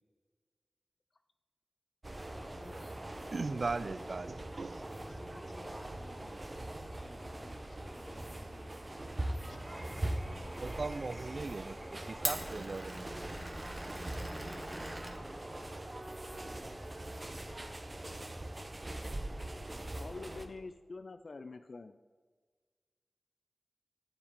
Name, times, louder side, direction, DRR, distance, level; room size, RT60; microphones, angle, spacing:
sound 1, 2.0-20.5, right 1 dB, 35° right, 0.9 m, -42 dB
voice 1, 2.3-2.9 4.9-6.4 6.9-8.8 14.1-14.9 17.9-18.3, left 1 dB, 45° left, 4 dB, 1.4 m, -56 dB
voice 2, 3.3-5.2 10.6-13.4, right 3 dB, 65° right, 15 dB, 0.3 m, -39 dB
Glass, 9.6-15.9, right 1 dB, 20° right, 1.2 m, -44 dB
voice 3, 19.9-22.0, left 3 dB, 70° left, 9 dB, 0.3 m, -46 dB
7.5 x 7.1 x 5.1 m, 1.5 s
cardioid pair, 45°, 0 cm